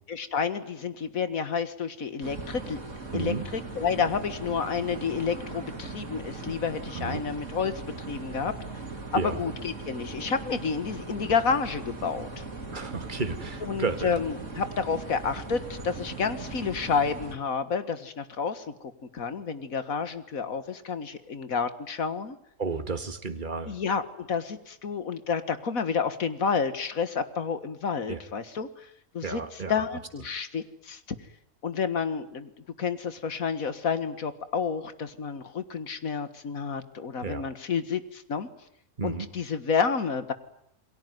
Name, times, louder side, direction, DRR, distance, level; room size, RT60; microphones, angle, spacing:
voice 1, 0.1-2.8 3.1-7.7 8.1-8.5 9.1-12.4 13.6-18.7 19.1-22.4 23.7-28.9 29.1-31.0 31.6-32.5 32.8-38.5 39.0-40.3, left 5 dB, 85° left, 12 dB, 2.1 m, -30 dB
sound 1, 2.2-17.3, right 3 dB, 65° right, 3.8 m, -39 dB
voice 2, 3.1-3.5 7.0-7.2 9.1-9.4 12.7-14.1 22.6-23.8 28.1-28.3 29.2-29.7 37.2-37.4 39.0-39.3, right 4 dB, 35° right, 9 dB, 1.9 m, -32 dB
29.0 x 21.5 x 9.4 m, 0.71 s
omnidirectional pair, 1.4 m